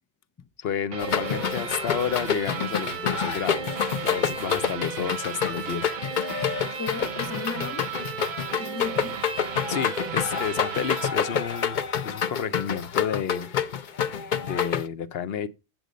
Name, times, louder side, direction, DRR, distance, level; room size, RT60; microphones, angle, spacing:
voice 1, 0.6-5.9 9.7-11.8 12.0-13.5 14.4-15.5, left 8 dB, 75° left, 0.9 m, -31 dB
sound 1, 0.9-12.2, right 8 dB, 55° right, 0.7 m, -35 dB
sound 2, 1.0-14.8, left 7 dB, 55° left, 0.8 m, -28 dB
voice 2, 6.7-8.0 8.5-9.2, left 5 dB, 30° left, 0.3 m, -36 dB
7.9 x 7.9 x 5.1 m
omnidirectional pair, 1.1 m